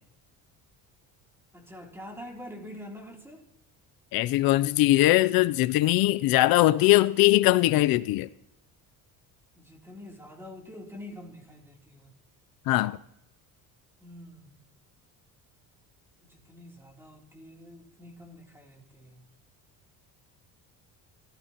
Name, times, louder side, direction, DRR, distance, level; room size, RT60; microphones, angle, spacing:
voice 1, 1.5-3.4 9.5-12.2 14.0-14.6 16.2-19.2, left 1 dB, 5° right, 3.2 m, -46 dB
voice 2, 4.1-8.3 12.7-13.0, left 17 dB, 70° left, 0.6 m, -21 dB
28.5 x 14.0 x 3.0 m
cardioid pair, 130°, 37 cm